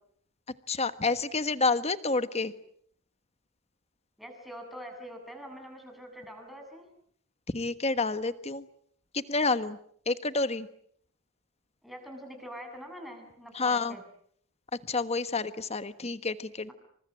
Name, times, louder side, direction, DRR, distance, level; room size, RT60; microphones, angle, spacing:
voice 1, 0.7-2.5 7.5-8.7 9.1-9.8 10.1-10.7 13.5-14.0 14.9-16.7, left 3 dB, 30° left, 12 dB, 1.3 m, -29 dB
voice 2, 4.2-6.9 11.8-14.0, equal, ahead, 3 dB, 7.6 m, -44 dB
28.5 x 26.0 x 7.7 m, 0.67 s
head